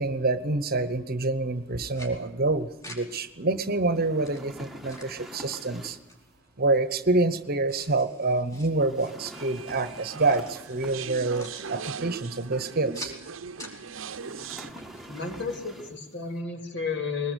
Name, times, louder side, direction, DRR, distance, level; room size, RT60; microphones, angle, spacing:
voice 1, 0.0-6.0 6.6-13.1, right 2 dB, 45° right, 13 dB, 1.0 m, -27 dB
sound 1, 1.5-15.8, left 1 dB, 15° left, 4.8 m, -50 dB
sound 2, 3.9-6.2 8.7-11.4 14.2-16.1, equal, ahead, 1.5 m, -45 dB
sound 3, 9.3-14.7, right 6 dB, 70° right, 0.7 m, -39 dB
voice 2, 15.1-17.3, left 4 dB, 60° left, 4 dB, 3.6 m, -32 dB
22.0 x 20.0 x 8.3 m, 0.93 s
head